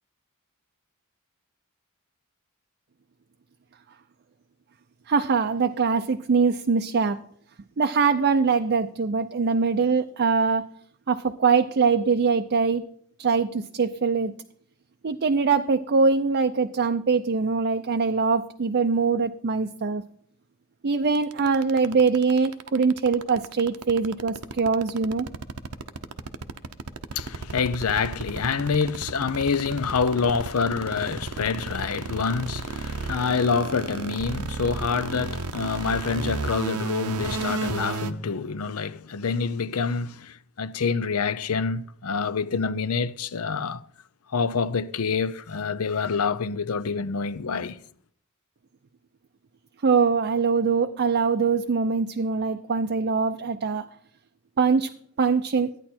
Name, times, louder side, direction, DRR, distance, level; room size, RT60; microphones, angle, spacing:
voice 1, 5.1-7.2 7.8-10.6 11.1-12.8 13.2-14.3 15.0-20.0 20.8-25.3 49.8-53.8 54.6-54.9 55.2-55.7, right 5 dB, 50° right, 0.5 m, -23 dB
sound 1, 21.1-38.1, right 4 dB, 80° right, 0.8 m, -32 dB
voice 2, 27.1-43.8 44.3-47.8, left 5 dB, 70° left, 0.6 m, -27 dB
13.5 x 9.6 x 4.4 m
head